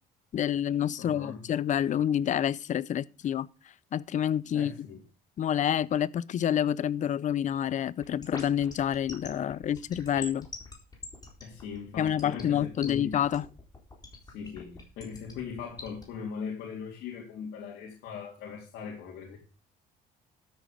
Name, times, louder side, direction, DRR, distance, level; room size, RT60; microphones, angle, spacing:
voice 1, 0.3-3.5 3.9-4.7 5.4-10.5 12.0-13.4, left 10 dB, 45° left, 0.6 m, -28 dB
voice 2, 1.0-1.4 4.5-5.0 11.4-13.2 14.3-19.4, left 6 dB, 80° left, 3.2 m, -40 dB
sound 1, 8.0-16.0, left 4 dB, 20° left, 4.1 m, -43 dB
13.0 x 8.0 x 5.0 m
cardioid pair, 110°, 17 cm